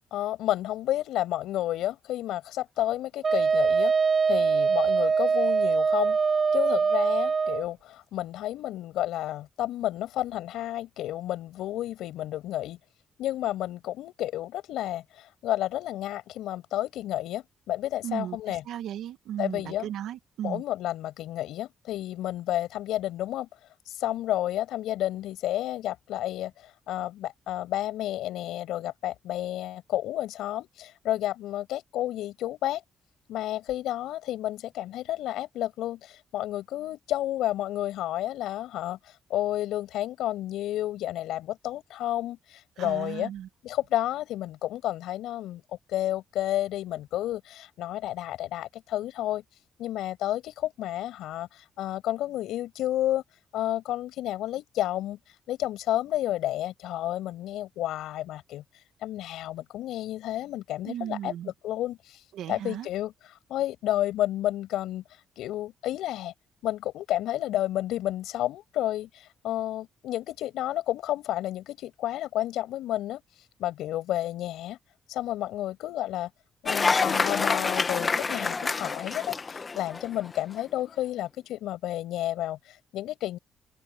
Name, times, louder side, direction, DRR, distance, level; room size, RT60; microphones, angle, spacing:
voice 1, 0.1-3.9 4.3-6.2 6.5-12.8 13.2-18.6 19.4-19.9 20.4-23.5 23.9-32.8 33.3-39.0 39.3-43.3 43.6-45.6 45.9-49.4 49.8-53.2 53.5-55.2 55.5-58.6 59.0-62.2 62.5-63.1 63.5-65.0 65.4-66.3 66.6-73.2 73.6-74.8 75.1-76.3 76.6-83.4, left 13 dB, 85° left, 7.2 m, -31 dB
Wind instrument woodwind instrument, 3.2-7.6, right 5 dB, 40° right, 0.3 m, -23 dB
voice 2, 18.0-20.6 42.8-43.5 60.8-61.5 62.3-62.9, right 11 dB, 80° right, 2.1 m, -36 dB
Cheering / Applause, 76.7-80.4, left 4 dB, 30° left, 1.4 m, -27 dB
cardioid pair, 90°, 0 cm